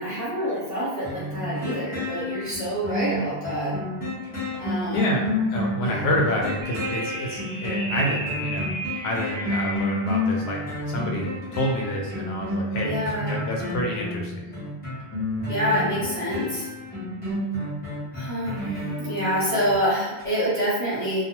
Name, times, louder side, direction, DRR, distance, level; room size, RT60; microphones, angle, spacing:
voice 1, 0.0-3.7 4.6-5.2 5.8-6.1 12.8-13.4 15.5-16.7 18.1-21.2, equal, 15° right, -10 dB, 1.1 m, -27 dB
sound 1, 1.0-19.7 20.2-20.3, left 1 dB, 10° left, 0.9 m, -30 dB
voice 2, 4.9-5.2 5.5-8.7 9.0-12.9 13.2-14.5, left 1 dB, 85° left, -1 dB, 0.8 m, -28 dB
sound 2, 6.6-10.1, right 1 dB, 85° right, 0.9 m, -33 dB
2.3 x 2.2 x 3.0 m, 1.1 s
omnidirectional pair, 1.0 m